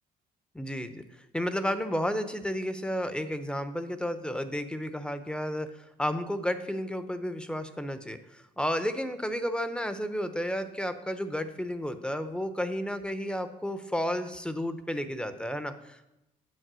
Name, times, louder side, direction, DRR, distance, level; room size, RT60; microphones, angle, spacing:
voice 1, 0.5-1.0 1.3-16.1, equal, 5° left, 10 dB, 0.8 m, -32 dB
9.5 x 7.1 x 6.2 m, 0.93 s
cardioid pair, 110°, 17 cm